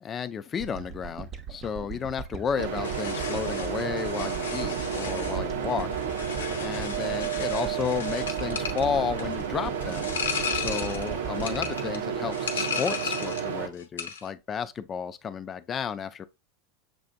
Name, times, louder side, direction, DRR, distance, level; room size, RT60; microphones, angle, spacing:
voice 1, 0.0-5.9 6.6-10.1 10.5-16.3, left 7 dB, 30° left, 0.4 m, -32 dB
sound 1, 0.6-13.1, right 7 dB, 35° right, 0.7 m, -40 dB
sound 2, 2.6-13.7, right 8 dB, 75° right, 0.6 m, -31 dB
sound 3, 2.8-13.5 13.8-14.3, left 7 dB, 85° left, 0.7 m, -35 dB
6.8 x 2.5 x 2.2 m
hypercardioid pair, 95°, 0 cm